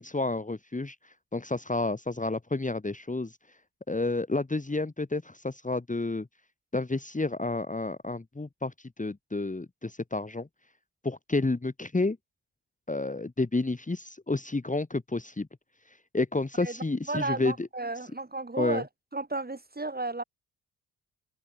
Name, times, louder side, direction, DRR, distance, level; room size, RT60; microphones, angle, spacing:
voice 1, 0.0-3.4 3.9-6.3 6.7-10.5 11.0-12.2 12.9-15.5 16.1-17.7 18.6-18.8, left 2 dB, 15° left, 2.4 m, -30 dB
voice 2, 17.1-18.9 19.1-20.2, right 2 dB, 20° right, 4.0 m, -33 dB
open air
hypercardioid pair, 40°, 46 cm